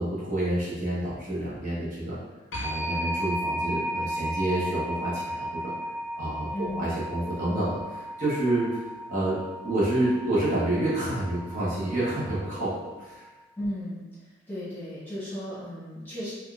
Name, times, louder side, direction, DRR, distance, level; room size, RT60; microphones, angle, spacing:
voice 1, 0.0-2.2 2.6-5.7 6.2-8.8 9.1-9.4 9.6-12.7 13.0-13.3, right 1 dB, 40° right, -9 dB, 0.9 m, -28 dB
sound 1, 2.5-13.1, equal, 75° left, 0.6 m, -35 dB
voice 2, 6.5-6.8 13.6-14.1 14.5-16.3, equal, 10° left, -11 dB, 1.1 m, -35 dB
3.6 x 2.3 x 2.4 m, 1.1 s
head